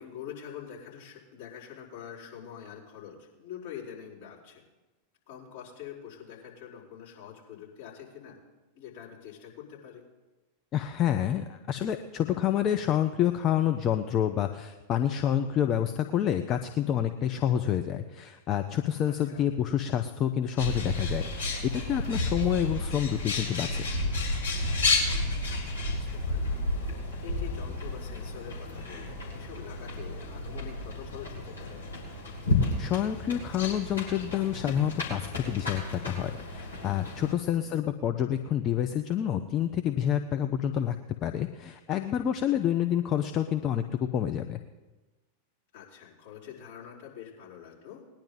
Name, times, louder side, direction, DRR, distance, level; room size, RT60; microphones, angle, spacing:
voice 1, 0.0-4.6 5.3-8.4 8.7-10.0 19.0-19.4 25.4-26.6 26.9-31.8 37.5-37.8 45.7-48.0, left 9 dB, 55° left, -7 dB, 4.8 m, -45 dB
voice 2, 10.7-23.8 32.8-41.0 41.2-44.6, left 10 dB, 30° left, 6 dB, 0.7 m, -28 dB
Bird, 20.6-37.3, left 2 dB, 75° left, 3.5 m, -32 dB
20.0 x 10.5 x 4.0 m, 1.2 s
figure-of-eight pair, 90°, 0 cm